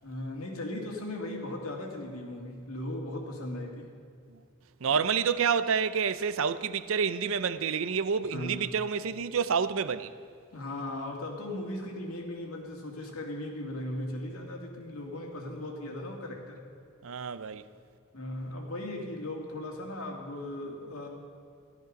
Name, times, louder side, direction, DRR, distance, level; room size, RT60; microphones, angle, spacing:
voice 1, 0.0-3.9 8.3-8.7 10.5-16.6 18.1-21.1, left 1 dB, 75° left, 2.4 m, -37 dB
voice 2, 4.8-10.1 17.0-17.6, right 6 dB, 65° right, 0.5 m, -28 dB
15.0 x 12.5 x 5.2 m
head